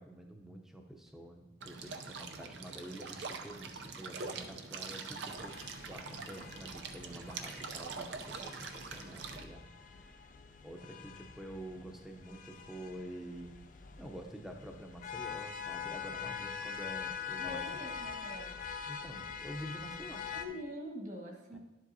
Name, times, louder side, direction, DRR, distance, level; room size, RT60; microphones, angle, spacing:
voice 1, 0.0-9.6 10.6-13.6 14.0-17.7 18.9-20.3 21.5-21.6, equal, ahead, 3 dB, 0.6 m, -48 dB
sound 1, 1.6-9.4, right 4 dB, 75° right, 0.6 m, -44 dB
sound 2, 5.4-20.4, left 6 dB, 45° left, 0.4 m, -44 dB
voice 2, 17.4-18.6 20.2-21.6, equal, 40° right, 0 dB, 1.5 m, -44 dB
11.5 x 7.6 x 2.7 m, 1.1 s
head